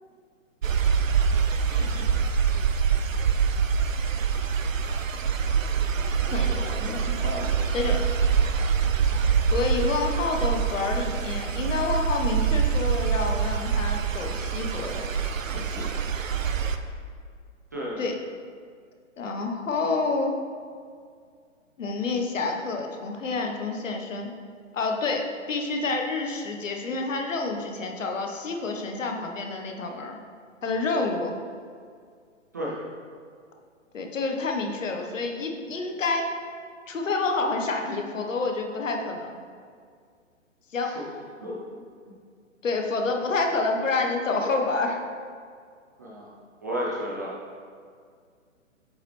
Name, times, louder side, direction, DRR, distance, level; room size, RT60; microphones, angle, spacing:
sound 1, 0.6-16.8, right 6 dB, 85° right, 0.6 m, -25 dB
voice 1, 1.7-2.0 6.3-8.0 9.5-15.1 15.5-15.9 18.0-18.2 19.2-20.4 21.8-24.3 24.7-30.2 30.6-31.3 33.9-36.3 36.9-39.4 40.7-40.9 42.6-45.0, left 3 dB, 75° left, 2 dB, 1.1 m, -28 dB
voice 2, 46.0-46.3 46.6-47.3, equal, 15° right, -6 dB, 0.3 m, -32 dB
8.1 x 5.7 x 3.2 m, 2.1 s
figure-of-eight pair, 130°, 39 cm